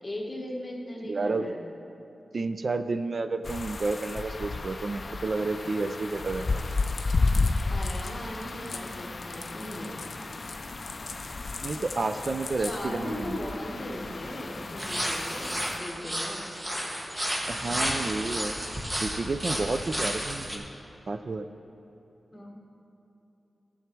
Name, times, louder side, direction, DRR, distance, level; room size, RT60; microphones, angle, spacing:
voice 1, 0.0-1.6 7.7-10.0 12.6-16.5 22.3-22.5, left 1 dB, 25° left, -1 dB, 1.4 m, -38 dB
voice 2, 1.0-1.5 2.3-6.6 11.6-13.4 17.5-18.6 19.0-20.6 21.1-21.5, right 3 dB, 50° right, 10 dB, 0.4 m, -30 dB
sound 1, 3.4-15.8, left 3 dB, 45° left, 0.4 m, -33 dB
sound 2, 6.6-12.8, left 4 dB, 70° left, 0.8 m, -42 dB
sound 3, 14.8-20.6, equal, 15° right, 1.2 m, -32 dB
13.5 x 7.1 x 4.6 m, 2.9 s
wide cardioid pair, 115°, 0 cm